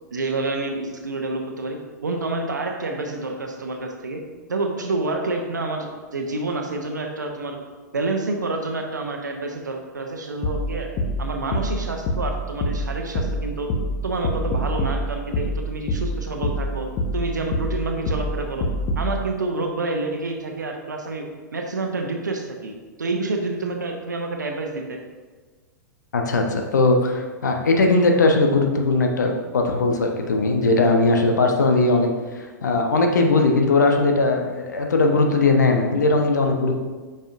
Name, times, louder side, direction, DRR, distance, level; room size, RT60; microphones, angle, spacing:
voice 1, 0.1-4.2 4.5-7.6 7.9-10.9 11.2-13.8 14.0-18.7 19.0-25.0, right 2 dB, 80° right, 3 dB, 0.9 m, -28 dB
sound 1, 10.4-19.2, equal, 40° left, 1.0 m, -26 dB
voice 2, 26.1-36.7, left 3 dB, 70° left, 3 dB, 0.9 m, -19 dB
8.7 x 5.4 x 2.6 m, 1.4 s
figure-of-eight pair, 100°, 10 cm